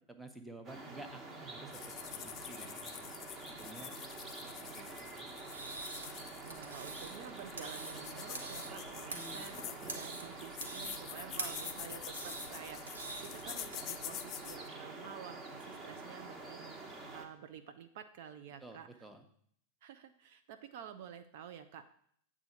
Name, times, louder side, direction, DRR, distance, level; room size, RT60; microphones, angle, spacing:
voice 1, 0.1-1.7 2.0-3.0 3.5-4.0 4.4-5.4 9.1-9.5 18.6-19.2, right 2 dB, 5° right, 6 dB, 0.9 m, -52 dB
sound 1, 0.6-17.2, right 2 dB, 25° right, 1.2 m, -47 dB
sound 2, 1.7-14.7, left 11 dB, 35° left, 0.4 m, -48 dB
sound 3, 5.4-13.8, right 3 dB, 70° right, 1.1 m, -46 dB
voice 2, 6.4-19.1 19.8-21.9, right 8 dB, 50° right, 8 dB, 0.5 m, -51 dB
8.1 x 3.7 x 6.7 m, 0.64 s
figure-of-eight pair, 90°, 0 cm